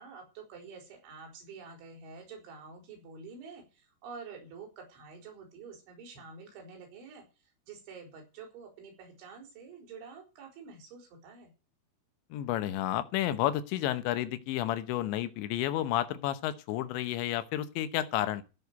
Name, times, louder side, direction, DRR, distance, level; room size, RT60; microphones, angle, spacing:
voice 1, 0.0-11.5, right 5 dB, 70° right, 3 dB, 6.6 m, -48 dB
voice 2, 12.3-18.4, left 13 dB, 75° left, 12 dB, 3.1 m, -31 dB
15.5 x 6.4 x 8.2 m, 0.31 s
omnidirectional pair, 5.7 m